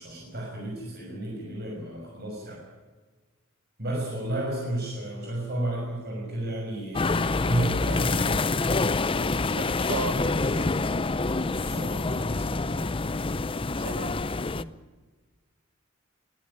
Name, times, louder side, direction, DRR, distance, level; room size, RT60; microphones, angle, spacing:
voice 1, 0.0-2.6 3.8-8.6 11.5-12.9 14.5-14.7, right 1 dB, 50° right, -2 dB, 6.2 m, -33 dB
sound 1, 6.9-14.6, left 3 dB, 25° left, 0.6 m, -26 dB
voice 2, 9.5-10.9 13.5-14.3, right 4 dB, 85° right, 14 dB, 1.1 m, -36 dB
21.0 x 15.5 x 9.7 m, 1.3 s
head